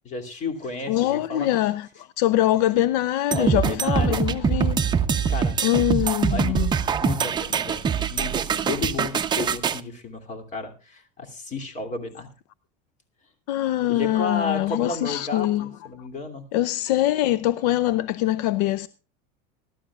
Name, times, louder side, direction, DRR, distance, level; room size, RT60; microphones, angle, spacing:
voice 1, 0.0-1.5 3.3-4.2 5.3-5.6 6.3-6.6 7.0-7.8 8.1-12.3 13.9-16.4, left 3 dB, 35° left, 2.7 m, -32 dB
voice 2, 0.9-4.8 5.6-6.7 13.5-15.7 16.0-16.1 16.5-18.9, left 14 dB, 75° left, 0.6 m, -23 dB
sound 1, 3.3-9.8, right 6 dB, 20° right, 0.7 m, -24 dB
20.5 x 12.0 x 2.4 m
supercardioid pair, 130°, 21 cm